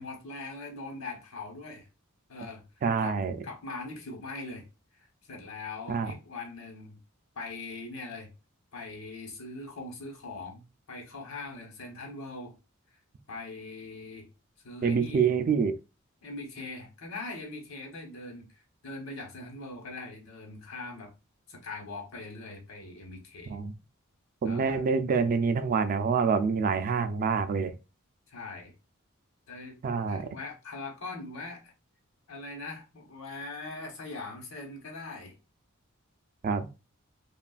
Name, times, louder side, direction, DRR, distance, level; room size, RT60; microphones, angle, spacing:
voice 1, 0.0-1.9 2.3-2.6 3.0-3.2 3.4-4.7 4.9-7.0 7.3-8.3 8.7-10.6 10.9-12.5 13.3-14.3 14.6-15.3 16.2-18.5 18.8-21.1 21.5-23.6 24.4-24.8 28.3-28.7 29.5-29.8 30.1-31.7 32.3-35.3, left 3 dB, 80° left, 1.0 m, -41 dB
voice 2, 2.8-3.4 5.9-6.1 14.8-15.8 23.5-23.7 24.4-27.8 29.8-30.3 36.4-36.7, right 5 dB, 40° right, 0.3 m, -26 dB
3.0 x 2.4 x 2.4 m
head